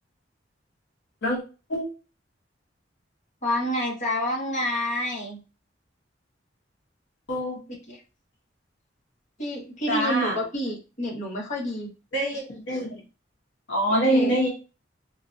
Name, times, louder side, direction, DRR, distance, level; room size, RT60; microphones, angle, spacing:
voice 1, 3.4-5.4 7.9-8.0 9.4-11.9 13.9-14.4, equal, 45° left, -3 dB, 1.3 m, -28 dB
voice 2, 9.9-10.4 12.1-13.0 13.7-14.5, equal, 75° left, -1 dB, 0.9 m, -24 dB
3.8 x 2.4 x 2.6 m, 0.31 s
head